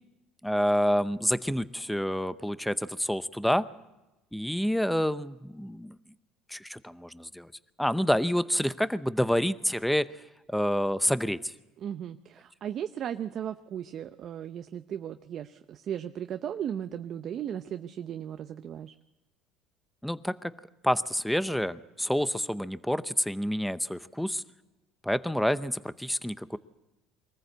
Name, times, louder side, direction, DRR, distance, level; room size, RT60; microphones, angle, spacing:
voice 1, 0.4-3.7 4.3-6.0 6.5-7.5 7.8-10.1 10.5-11.5 20.0-20.5 20.8-24.4 25.0-26.6, equal, ahead, 14 dB, 0.7 m, -28 dB
voice 2, 11.8-18.9, right 9 dB, 50° right, 9 dB, 0.7 m, -36 dB
23.5 x 14.5 x 8.0 m, 1.0 s
supercardioid pair, 95°, 0 cm